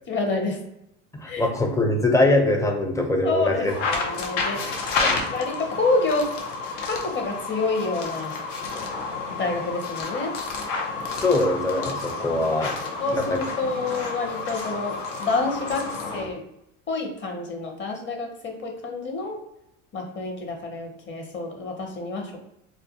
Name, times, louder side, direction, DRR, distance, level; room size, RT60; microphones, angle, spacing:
voice 1, 0.1-0.6 1.2-1.5 3.2-4.8 5.1-6.3 6.8-8.4 9.3-10.3 13.0-15.9 16.1-16.4 16.9-19.4 19.9-22.3, left 3 dB, 30° left, 3 dB, 0.8 m, -28 dB
voice 2, 1.1-3.7 5.0-5.3 11.1-12.8 13.1-13.4, left 2 dB, 10° left, 2 dB, 0.4 m, -23 dB
sound 1, 3.7-16.3, left 4 dB, 80° left, 0.7 m, -30 dB
2.4 x 2.2 x 2.7 m, 0.79 s
hypercardioid pair, 85°, 37 cm